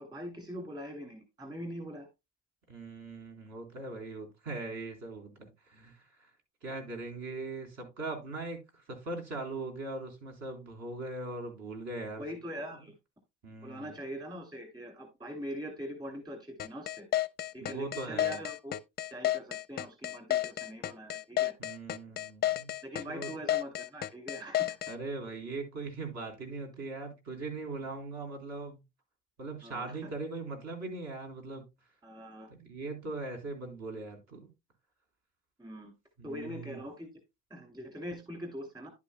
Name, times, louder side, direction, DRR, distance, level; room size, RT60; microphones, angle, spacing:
voice 1, 0.0-2.1 12.2-12.9 13.6-17.1 17.5-18.8 19.1-21.5 22.8-24.8 29.6-30.1 32.0-32.5 35.6-35.9 36.2-37.1 37.5-38.9, equal, 15° right, 2.5 m, -42 dB
voice 2, 2.7-6.3 6.6-12.2 13.4-14.0 17.6-18.4 21.6-22.7 23.1-23.3 24.9-28.8 29.4-31.6 32.5-34.5 36.2-36.8, right 3 dB, 60° right, 3.8 m, -40 dB
sound 1, 16.6-24.9, left 13 dB, 35° left, 0.5 m, -31 dB
11.0 x 8.4 x 2.2 m
cardioid pair, 150°, 31 cm